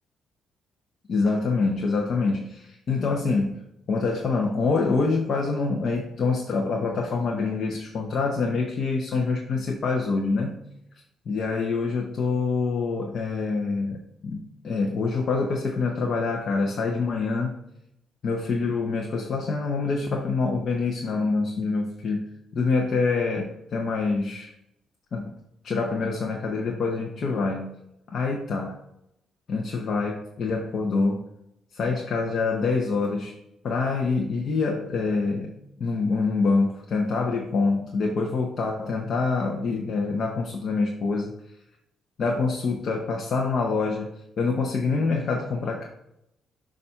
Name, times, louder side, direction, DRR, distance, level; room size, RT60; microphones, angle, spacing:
voice 1, 1.1-3.6 3.9-10.6 11.3-17.6 18.2-24.5 25.1-25.4 25.6-27.7 28.1-28.8 29.5-31.2 31.7-33.3 33.6-35.5 35.8-41.3 42.2-44.1 44.4-45.9, left 4 dB, 55° left, 1 dB, 0.7 m, -26 dB
6.8 x 2.5 x 5.6 m, 0.83 s
cardioid pair, 90°, 0 cm